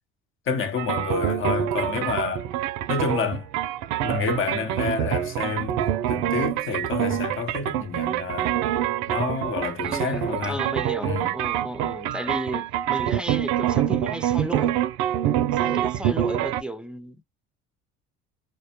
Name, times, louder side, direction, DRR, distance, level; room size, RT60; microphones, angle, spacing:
voice 1, 0.5-2.5 2.9-3.5 4.0-8.5 9.1-10.6 11.0-11.3, left 5 dB, 45° left, 0.9 m, -29 dB
sound 1, 0.8-16.6, right 11 dB, 75° right, 0.4 m, -26 dB
voice 2, 9.8-14.7 15.5-17.2, right 1 dB, 5° right, 0.5 m, -33 dB
2.2 x 2.1 x 2.8 m
supercardioid pair, 85°, 29 cm